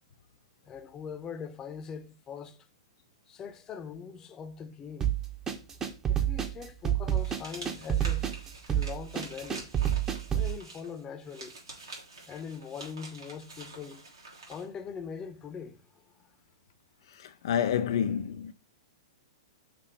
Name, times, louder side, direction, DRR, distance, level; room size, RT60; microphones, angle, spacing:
voice 1, 0.6-2.7 3.3-5.1 6.1-8.3 8.7-9.7 10.3-11.6 12.2-14.0 14.5-15.8, left 6 dB, 25° left, 0.9 m, -42 dB
sound 1, 5.0-10.5, right 10 dB, 20° right, 1.0 m, -28 dB
sound 2, 7.1-14.7, right 3 dB, 80° right, 2.9 m, -47 dB
voice 2, 17.1-18.5, left 8 dB, 60° left, 0.5 m, -29 dB
6.0 x 2.9 x 5.6 m
hypercardioid pair, 110°, 3 cm